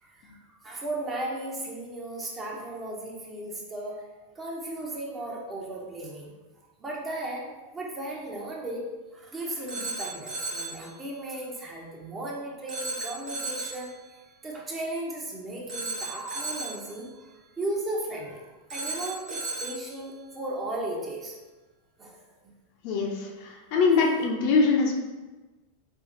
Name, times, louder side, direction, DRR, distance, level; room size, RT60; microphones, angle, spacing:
voice 1, 0.0-4.0 4.3-6.3 6.8-8.8 9.1-13.9 14.4-21.4 22.0-22.2 22.4-22.5 23.9-24.0, right 1 dB, 20° right, -2 dB, 0.8 m, -36 dB
Telephone, 9.7-10.8 12.7-13.9 15.7-16.9 18.7-19.9, right 3 dB, 35° right, 1.2 m, -34 dB
voice 2, 22.8-24.9, left 4 dB, 45° left, 0 dB, 0.6 m, -23 dB
4.6 x 2.7 x 2.6 m, 1.2 s
figure-of-eight pair, 90°, 0 cm